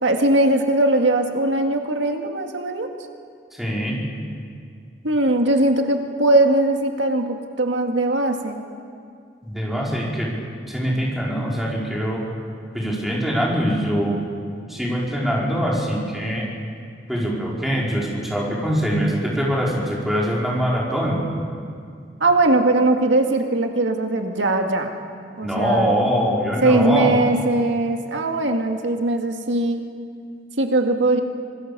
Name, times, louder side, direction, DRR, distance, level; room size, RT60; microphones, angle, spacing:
voice 1, 0.0-2.9 5.0-8.6 22.2-24.9 25.4-25.9 26.6-29.8 30.6-31.2, right 2 dB, 90° right, 3 dB, 2.0 m, -20 dB
voice 2, 3.5-4.0 9.4-10.3 10.7-12.2 12.7-14.2 14.7-16.5 17.1-21.2 25.4-27.2, equal, ahead, -4 dB, 4.9 m, -23 dB
26.0 x 21.0 x 6.9 m, 2.2 s
head